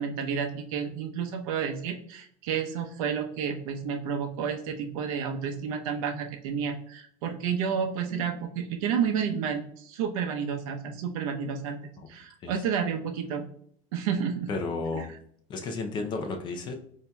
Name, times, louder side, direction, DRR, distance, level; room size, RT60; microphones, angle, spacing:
voice 1, 0.0-11.8 12.1-13.4 13.9-14.5 14.9-15.0, right 7 dB, 80° right, 5 dB, 0.8 m, -30 dB
voice 2, 14.5-15.1 15.5-16.7, left 3 dB, 25° left, 4 dB, 0.5 m, -32 dB
8.2 x 2.8 x 2.2 m, 0.64 s
cardioid pair, 170°, 18 cm